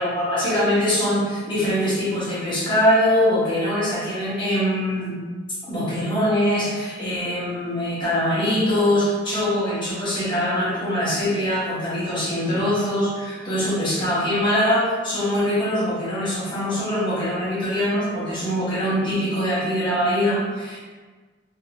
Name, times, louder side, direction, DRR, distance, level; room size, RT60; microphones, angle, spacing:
voice 1, 0.0-5.1 5.6-20.8, equal, 25° left, -10 dB, 1.2 m, -23 dB
2.8 x 2.7 x 2.8 m, 1.4 s
head